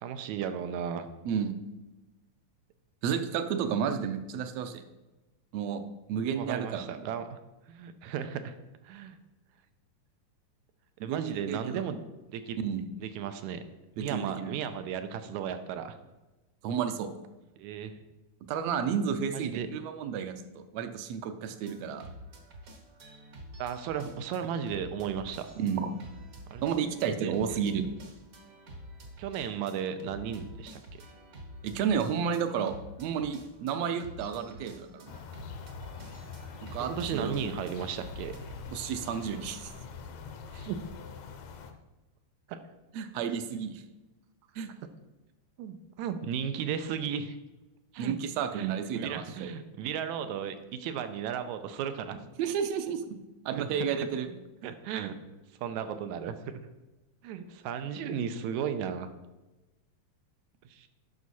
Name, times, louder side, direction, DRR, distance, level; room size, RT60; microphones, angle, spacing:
voice 1, 0.0-1.1 6.3-7.4 7.7-8.5 8.8-9.2 11.0-12.0 12.3-12.6 13.0-13.6 14.0-15.9 17.6-18.0 19.3-19.7 23.6-25.5 26.5-26.6 27.2-27.3 29.2-31.0 36.9-38.4 40.7-40.8 42.5-42.6 45.6-47.4 47.9-48.2 48.5-52.2 53.5-53.6 54.6-55.2 55.6-56.5 57.2-59.1 60.7-60.9, right 8 dB, 90° right, 9 dB, 2.0 m, -35 dB
voice 2, 3.0-4.8 5.5-5.8 6.1-6.9 11.0-11.8 12.6-12.8 14.0-14.5 16.6-17.1 18.5-22.1 25.6-25.9 26.6-27.9 31.6-35.2 36.7-37.4 38.7-39.7 40.5-40.7 42.9-43.8 44.6-44.7 48.0-49.5 52.4-53.2 53.4-54.3 54.6-54.7, right 7 dB, 75° right, 8 dB, 1.7 m, -32 dB
sound 1, 21.5-38.6, equal, 55° right, 0.9 m, -48 dB
sound 2, 35.1-41.7, left 6 dB, 75° left, 2.0 m, -44 dB
11.0 x 6.0 x 4.1 m, 1.1 s
omnidirectional pair, 3.4 m